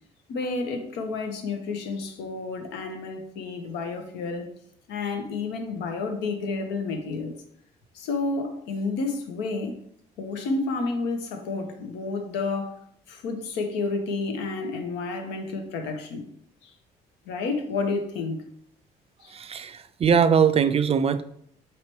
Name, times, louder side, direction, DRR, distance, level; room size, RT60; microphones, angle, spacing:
voice 1, 0.3-4.5 4.9-7.4 7.9-9.8 10.2-12.8 13.1-16.2 16.6-16.7 17.3-18.5 19.2-19.3, left 3 dB, 85° left, 5 dB, 0.7 m, -30 dB
voice 2, 19.3-21.2, right 7 dB, 35° right, 12 dB, 0.4 m, -21 dB
3.1 x 3.0 x 4.5 m, 0.68 s
supercardioid pair, 70°, 17 cm